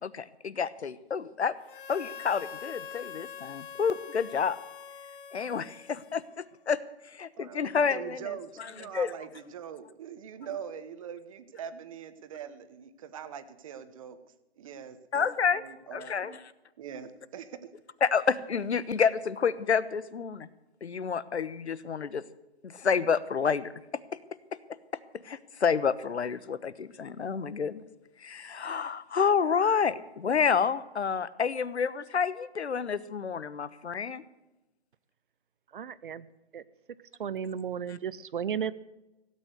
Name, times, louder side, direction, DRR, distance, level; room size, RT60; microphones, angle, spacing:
voice 1, 0.0-1.5 1.9-4.6 5.3-6.8 7.1-8.3 8.9-9.1 15.1-15.6 15.9-16.3 18.0-20.5 20.8-22.2 22.6-23.7 25.2-27.8 28.2-34.2, left 6 dB, 85° left, 17 dB, 1.1 m, -29 dB
Harmonica, 1.6-6.5, left 7 dB, 55° left, 1.0 m, -44 dB
voice 2, 7.4-14.2 14.6-16.4 16.8-17.7, right 8 dB, 30° right, 12 dB, 1.1 m, -42 dB
voice 3, 35.7-36.3 36.5-36.6 37.2-38.7, right 8 dB, 55° right, 17 dB, 0.7 m, -34 dB
16.5 x 8.6 x 8.0 m, 0.99 s
hypercardioid pair, 155°, 32 cm